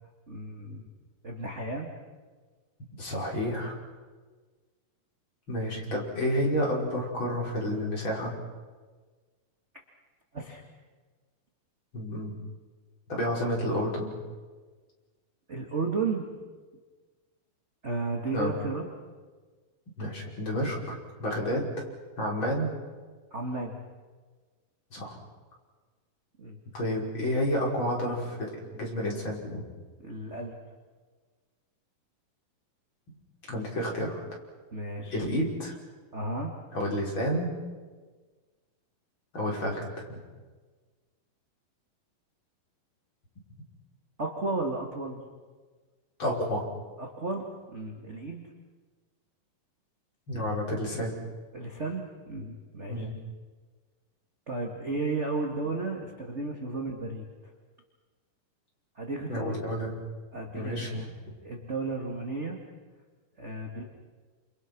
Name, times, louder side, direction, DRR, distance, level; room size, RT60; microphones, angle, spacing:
voice 1, 0.3-0.9 1.2-1.9 10.3-10.6 15.5-16.3 17.8-18.8 23.3-23.8 26.4-26.6 30.0-30.6 34.7-35.3 36.1-36.5 44.2-45.2 47.0-48.4 51.5-53.1 54.5-57.3 59.0-59.6 60.3-61.1 61.4-62.6 63.4-63.8, right 3 dB, 25° right, 1 dB, 1.9 m, -33 dB
voice 2, 3.0-3.7 5.5-8.3 11.9-12.4 13.1-14.1 18.3-18.5 20.0-21.7 22.2-22.7 24.9-25.2 26.7-29.6 33.5-34.2 35.1-35.7 36.7-37.5 39.3-39.8 40.1-40.2 46.2-46.6 50.3-51.1 52.9-53.1 59.3-60.0 60.5-60.9, equal, 30° left, -2 dB, 6.2 m, -30 dB
29.5 x 28.5 x 6.2 m, 1.4 s
omnidirectional pair, 4.1 m